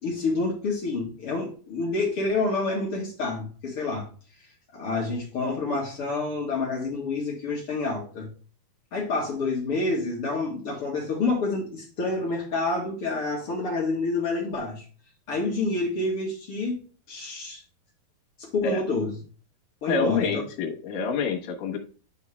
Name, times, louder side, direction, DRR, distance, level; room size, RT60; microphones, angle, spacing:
voice 1, 0.0-4.1 4.7-8.3 8.9-14.8 15.3-16.8 17.1-17.6 18.4-19.1 19.8-20.4, left 3 dB, 50° left, -2 dB, 1.8 m, -28 dB
voice 2, 19.9-21.8, left 4 dB, 65° left, 2 dB, 2.7 m, -27 dB
9.8 x 3.7 x 3.4 m, 0.38 s
omnidirectional pair, 4.5 m